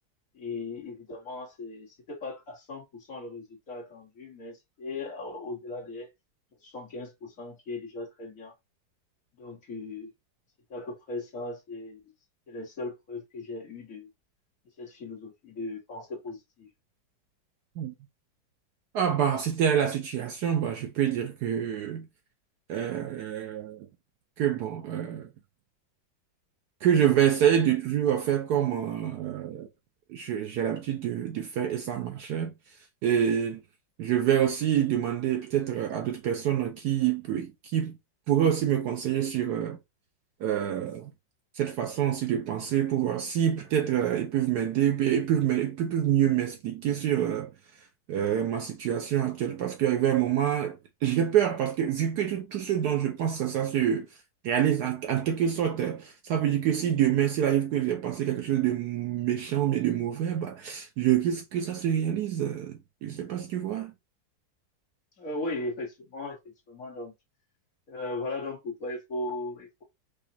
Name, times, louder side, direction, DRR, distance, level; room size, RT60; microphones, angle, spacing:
voice 1, 0.3-6.1 6.6-8.5 9.4-10.1 10.7-12.0 12.5-14.1 14.8-16.7 65.2-66.4 66.7-67.1 67.9-69.8, left 2 dB, 45° left, 1.7 m, -37 dB
voice 2, 18.9-22.1 22.7-23.9 24.4-25.3 26.8-29.7 30.1-32.5 33.0-33.6 34.0-38.0 38.3-39.8 40.4-41.1 41.5-47.5 48.1-54.1 54.4-63.9, right 10 dB, 70° right, 1.0 m, -26 dB
4.9 x 2.4 x 2.8 m
omnidirectional pair, 2.1 m